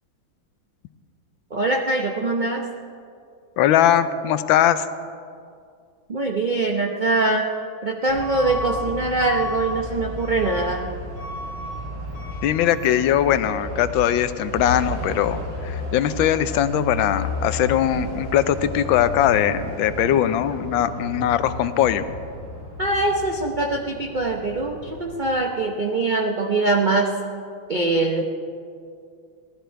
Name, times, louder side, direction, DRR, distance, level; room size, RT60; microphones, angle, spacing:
voice 1, 1.5-2.6 6.1-7.5 7.8-10.9 22.8-27.1 27.7-28.2, right 2 dB, 65° right, 1 dB, 0.4 m, -23 dB
voice 2, 3.6-4.8 12.4-22.0, left 11 dB, 80° left, 12 dB, 1.4 m, -20 dB
Truck / Alarm, 8.1-25.3, left 1 dB, 30° right, 4.6 m, -33 dB
17.0 x 13.0 x 4.5 m, 2.3 s
omnidirectional pair, 2.2 m